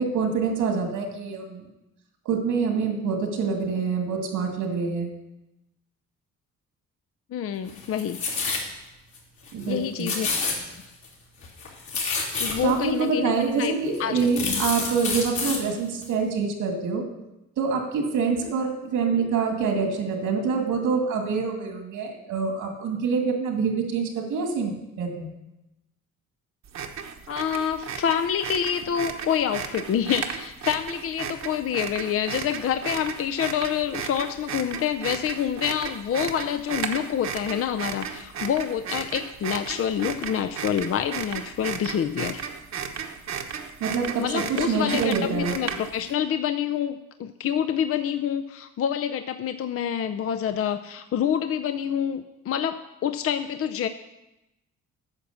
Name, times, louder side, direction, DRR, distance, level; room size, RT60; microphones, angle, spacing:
voice 1, 0.0-1.7 2.3-5.1 9.5-10.1 12.6-17.0 17.6-25.3 43.8-45.6, right 5 dB, 85° right, 3 dB, 2.3 m, -26 dB
voice 2, 7.3-8.2 9.7-10.3 12.4-13.7 14.0-14.6 18.4-18.5 27.3-42.4 44.2-53.9, left 9 dB, 50° left, 8 dB, 0.5 m, -27 dB
sound 1, 7.7-8.7 9.1-9.2 9.5-9.7 10.0-11.1 11.4-12.8 13.5-13.6 13.9-15.6 16.0-16.1, left 4 dB, 70° left, 3.2 m, -28 dB
sound 2, 26.7-46.1, right 7 dB, 60° right, 1.2 m, -34 dB
9.8 x 6.2 x 7.1 m, 0.94 s
cardioid pair, 90°, 30 cm